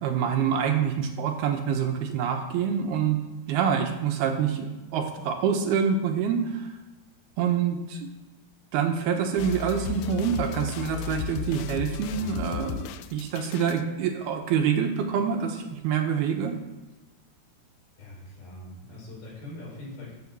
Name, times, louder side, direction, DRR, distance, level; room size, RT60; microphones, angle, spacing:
voice 1, 0.0-3.2 3.5-6.7 7.4-8.1 8.7-12.9 13.1-16.6, right 7 dB, 75° right, 4 dB, 2.9 m, -26 dB
sound 1, 9.4-13.8, left 11 dB, 85° left, 2.2 m, -35 dB
voice 2, 18.0-20.1, left 2 dB, 60° left, -4 dB, 7.3 m, -42 dB
13.5 x 7.7 x 7.4 m, 1.1 s
omnidirectional pair, 4.9 m